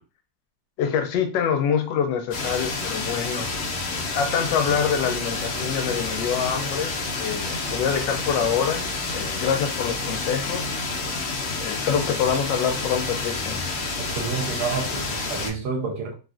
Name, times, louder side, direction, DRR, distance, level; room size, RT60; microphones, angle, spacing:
voice 1, 0.8-3.6 3.9-6.9 7.2-8.9 9.1-10.7 11.6-13.6, left 7 dB, 85° left, 1.2 m, -25 dB
sound 1, 2.3-15.5, left 3 dB, 60° left, 0.9 m, -29 dB
voice 2, 14.0-16.1, right 5 dB, 70° right, 1.2 m, -29 dB
3.3 x 2.4 x 2.4 m
omnidirectional pair, 1.9 m